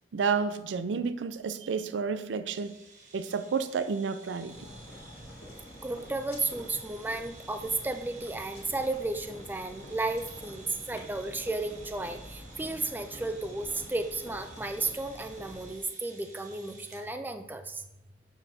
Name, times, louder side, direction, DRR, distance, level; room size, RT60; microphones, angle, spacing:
voice 1, 0.1-2.7 3.1-4.7, right 5 dB, 85° right, 12 dB, 0.4 m, -30 dB
sound 1, 2.6-17.1, right 3 dB, 45° right, 1.1 m, -53 dB
sound 2, 4.5-15.7, equal, 65° left, 1.8 m, -47 dB
voice 2, 5.8-17.8, right 2 dB, 10° right, 8 dB, 0.3 m, -33 dB
7.1 x 5.6 x 2.6 m, 0.88 s
head